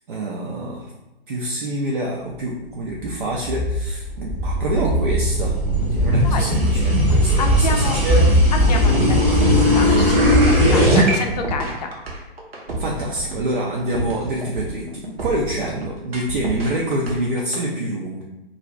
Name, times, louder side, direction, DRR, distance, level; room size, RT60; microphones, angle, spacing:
voice 1, 0.1-0.9 1.3-8.3 12.8-18.2, right 1 dB, 55° right, -2 dB, 0.5 m, -26 dB
sound 1, 3.1-11.1, equal, 20° right, 0.7 m, -17 dB
voice 2, 7.4-8.0 8.5-11.9, left 4 dB, 45° left, 4 dB, 0.5 m, -28 dB
sound 2, 7.7-17.6, right 2 dB, 75° right, 0.9 m, -31 dB
2.5 x 2.3 x 3.0 m, 1.0 s
figure-of-eight pair, 115°, 31 cm